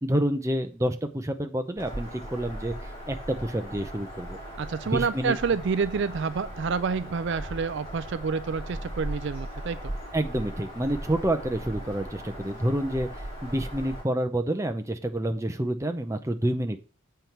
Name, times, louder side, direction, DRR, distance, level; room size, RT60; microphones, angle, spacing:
voice 1, 0.0-2.7 3.1-4.4 4.8-5.3 10.1-13.1 13.4-16.8, right 1 dB, 15° right, 7 dB, 0.7 m, -28 dB
Bird vocalization bird call bird song, 1.8-14.0, equal, 30° left, 4.9 m, -38 dB
voice 2, 4.6-9.9, right 5 dB, 55° right, 14 dB, 0.4 m, -28 dB
7.6 x 4.6 x 6.7 m, 0.36 s
head